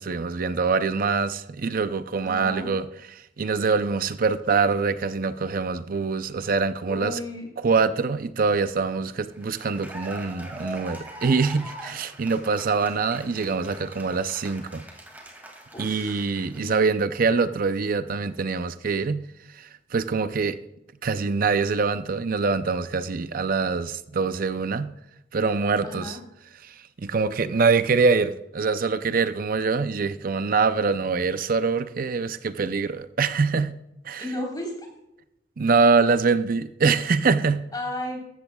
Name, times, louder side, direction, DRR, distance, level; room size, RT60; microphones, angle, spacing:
voice 1, 0.0-2.9 3.4-7.2 7.6-14.8 15.8-19.2 19.6-20.6 21.0-24.9 25.3-26.2 26.6-33.8 34.0-34.2 35.6-37.6, right 4 dB, 50° right, 0.6 m, -24 dB
voice 2, 2.2-2.7 6.9-7.5 15.7-16.2 16.5-16.9 25.8-26.2 34.2-34.9 37.7-38.2, left 1 dB, 25° left, 3.8 m, -34 dB
Cheering / Applause, 9.3-16.9, right 1 dB, 10° right, 2.3 m, -42 dB
15.0 x 13.5 x 2.3 m
head